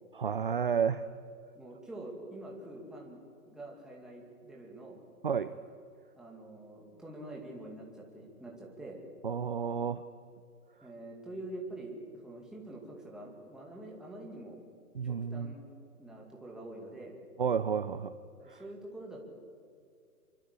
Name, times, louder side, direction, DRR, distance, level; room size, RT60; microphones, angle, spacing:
voice 1, 0.1-1.0 5.2-5.6 9.2-10.0 14.9-15.5 17.4-18.1 18.5-18.6, right 7 dB, 35° right, 13 dB, 0.6 m, -31 dB
voice 2, 1.5-3.2 3.5-5.0 6.1-9.0 10.8-12.0 12.2-14.6 15.0-15.7 16.0-17.2 18.4-19.3, right 1 dB, ahead, -2 dB, 2.5 m, -46 dB
27.5 x 24.5 x 8.4 m, 2.2 s
hypercardioid pair, 170°, 46 cm